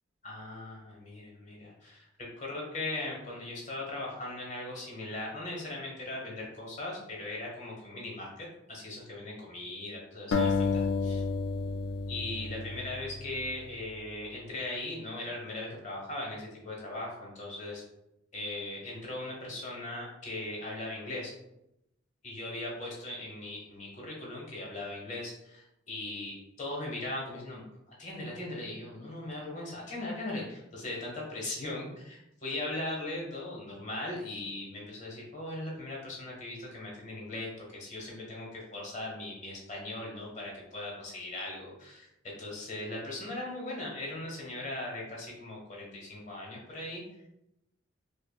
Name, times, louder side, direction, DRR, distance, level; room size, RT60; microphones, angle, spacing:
voice 1, 0.2-2.1 2.4-11.2 12.1-17.8 18.3-21.3 22.2-27.6 28.0-42.1 42.4-47.0, left 2 dB, 35° left, -2 dB, 1.0 m, -39 dB
sound 1, 10.3-13.5, left 4 dB, 60° left, 0.3 m, -31 dB
5.2 x 2.4 x 2.2 m, 0.85 s
head